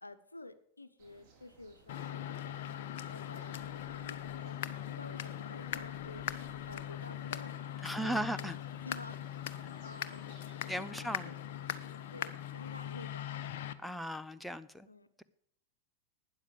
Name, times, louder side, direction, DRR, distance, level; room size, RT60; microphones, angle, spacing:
voice 1, 0.0-4.6 4.9-6.2 6.7-8.5 8.8-9.4 9.8-10.3 10.8-11.7 12.1-13.5 14.8-15.1, left 2 dB, 80° left, 11 dB, 0.9 m, -51 dB
sound 1, 1.0-10.5, right 3 dB, 40° right, 4.0 m, -62 dB
sound 2, 1.9-13.7, left 10 dB, 55° left, 0.7 m, -41 dB
voice 2, 7.8-8.6 10.7-11.3 13.8-14.9, right 1 dB, ahead, 12 dB, 0.6 m, -37 dB
12.5 x 9.7 x 5.0 m, 0.71 s
figure-of-eight pair, 90°, 0 cm